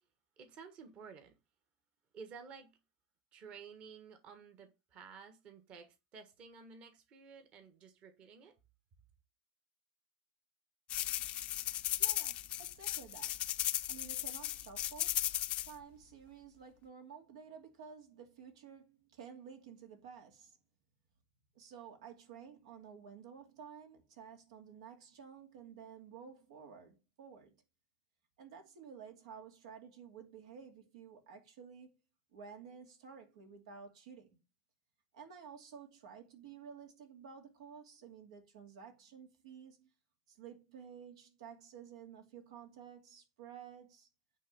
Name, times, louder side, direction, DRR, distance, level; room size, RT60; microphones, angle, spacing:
voice 1, 0.4-1.3 2.1-2.7 3.3-8.5, right 5 dB, 35° right, 1.5 m, -53 dB
sound 1, 10.9-15.7, left 14 dB, 35° left, 0.5 m, -36 dB
voice 2, 11.7-13.4 13.9-15.2 15.7-20.6 21.5-27.5 28.4-31.9 32.3-34.4 35.1-39.9 40.3-44.1, right 7 dB, 85° right, 2.6 m, -53 dB
9.3 x 3.6 x 6.8 m
supercardioid pair, 150°, 3 cm